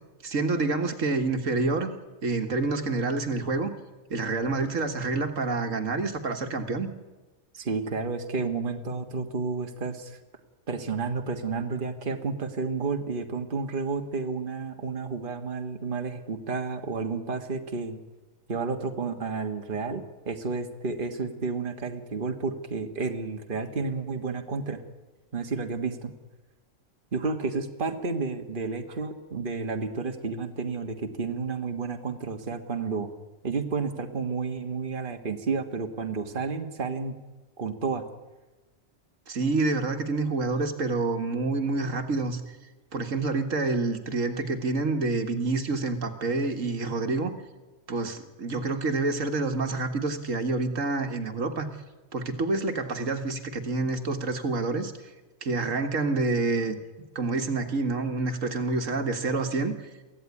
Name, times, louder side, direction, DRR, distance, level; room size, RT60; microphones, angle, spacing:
voice 1, 0.2-1.9 2.2-3.7 4.1-6.9 39.3-42.4 42.9-47.3 47.9-51.7 52.1-54.9 55.4-56.8 57.2-59.8, right 3 dB, 75° right, 6 dB, 2.0 m, -27 dB
voice 2, 7.5-10.2 10.7-18.0 18.5-24.8 25.3-26.1 27.1-33.1 33.4-37.2 37.6-38.0, right 4 dB, 40° right, 5 dB, 1.6 m, -31 dB
23.5 x 15.5 x 9.7 m, 1.2 s
omnidirectional pair, 1.4 m